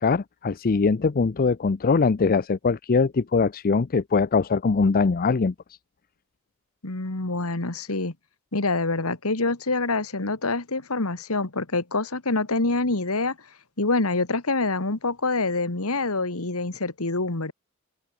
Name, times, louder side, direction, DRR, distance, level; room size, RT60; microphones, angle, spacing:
voice 1, 0.0-5.5, left 4 dB, 40° left, 0.5 m, -22 dB
voice 2, 6.8-8.1 8.5-13.4 13.8-17.5, left 3 dB, 75° left, 2.2 m, -26 dB
head